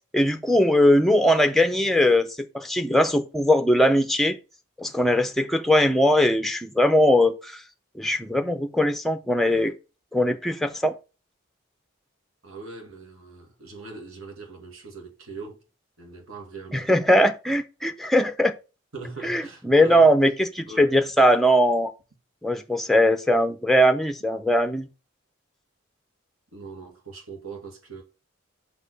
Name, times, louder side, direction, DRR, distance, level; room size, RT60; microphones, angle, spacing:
voice 1, 0.1-2.3 2.5-4.4 4.8-7.6 8.0-9.7 10.1-10.9 16.7-18.5 19.2-20.3 20.6-21.9 22.4-24.9, equal, ahead, 0.5 m, -20 dB
voice 2, 12.4-15.6 16.0-16.9 18.9-20.1 20.7-21.0 26.5-28.0, right 4 dB, 80° right, 2.1 m, -40 dB
5.8 x 4.8 x 4.7 m
head